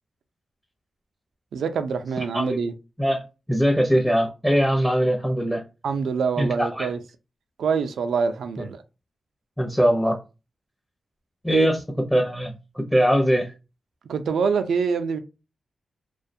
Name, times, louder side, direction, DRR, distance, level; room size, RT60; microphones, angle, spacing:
voice 1, 1.5-2.7 5.8-7.0 7.6-8.8 11.5-11.7 14.1-15.2, right 5 dB, 90° right, 0.3 m, -25 dB
voice 2, 3.5-5.6 6.4-6.9 8.6-8.7 9.6-10.2 11.4-11.8 12.1-13.5, equal, 5° left, 0.6 m, -21 dB
2.4 x 2.2 x 2.6 m
cardioid pair, 75°, 0 cm